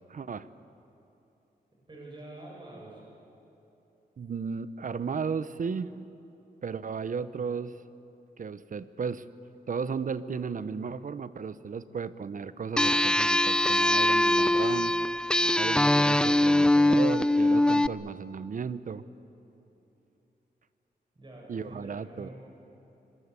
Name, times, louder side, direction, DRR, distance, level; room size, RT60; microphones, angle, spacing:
voice 1, 0.1-0.5 4.2-5.9 6.6-7.8 8.4-9.2 9.7-14.9 15.5-19.0 21.5-22.3, right 5 dB, 55° right, 15 dB, 0.9 m, -35 dB
voice 2, 1.9-3.0 21.1-22.3, right 1 dB, 30° right, -3 dB, 7.5 m, -46 dB
sound 1, 12.8-17.9, left 1 dB, 5° left, 0.5 m, -22 dB
25.5 x 21.0 x 8.3 m, 3.0 s
cardioid pair, 90°, 17 cm